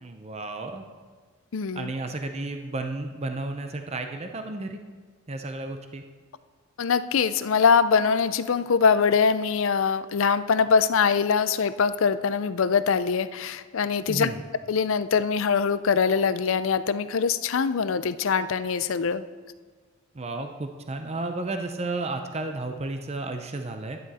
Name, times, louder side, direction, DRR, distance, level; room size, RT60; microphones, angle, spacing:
voice 1, 0.0-0.8 1.7-4.8 5.3-6.0 14.1-14.4 20.1-24.0, right 2 dB, 30° right, 5 dB, 0.6 m, -32 dB
voice 2, 1.5-1.9 6.8-14.3 14.7-19.2, left 6 dB, 65° left, 14 dB, 0.5 m, -23 dB
11.5 x 11.0 x 4.2 m, 1.5 s
head